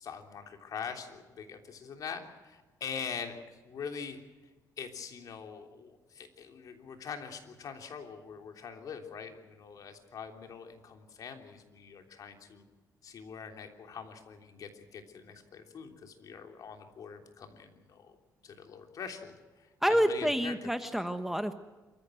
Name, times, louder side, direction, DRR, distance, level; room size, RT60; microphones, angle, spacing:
voice 1, 0.0-4.2 4.8-12.6 13.0-18.1 18.4-20.7, left 6 dB, 60° left, 4 dB, 3.3 m, -43 dB
voice 2, 19.8-21.6, equal, 5° right, 8 dB, 1.3 m, -28 dB
27.0 x 15.0 x 7.8 m, 1.2 s
cardioid pair, 115°, 7 cm